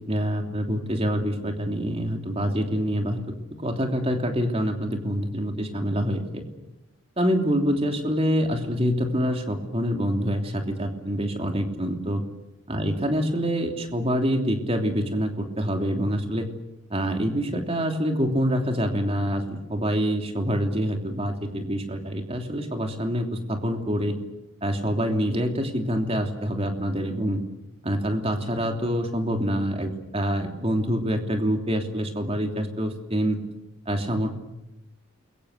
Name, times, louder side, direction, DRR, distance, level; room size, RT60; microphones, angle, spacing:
voice 1, 0.1-3.2 3.5-6.4 7.2-12.2 12.7-16.5 16.9-24.2 24.6-27.4 27.8-33.4 33.9-34.3, equal, 25° right, 4 dB, 3.1 m, -26 dB
29.0 x 23.0 x 6.6 m, 0.96 s
head